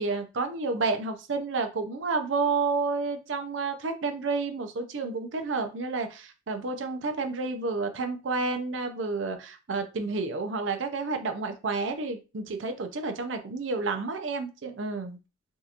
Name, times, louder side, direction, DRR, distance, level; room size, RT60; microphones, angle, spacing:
voice 1, 0.0-15.2, right 3 dB, 70° right, 6 dB, 0.5 m, -30 dB
3.6 x 2.5 x 2.8 m, 0.30 s
head